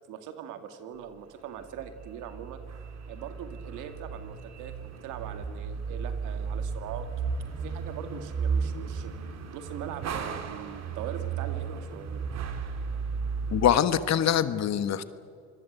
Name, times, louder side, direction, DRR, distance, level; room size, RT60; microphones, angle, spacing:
voice 1, 0.1-2.6 3.1-7.1 7.6-9.1 9.5-12.2, right 8 dB, 85° right, 8 dB, 2.2 m, -41 dB
sound 1, 1.6-13.7, right 5 dB, 60° right, 2.6 m, -34 dB
voice 2, 13.5-15.1, left 9 dB, 60° left, 12 dB, 1.4 m, -24 dB
26.0 x 20.5 x 8.1 m, 2.4 s
supercardioid pair, 75°, 30 cm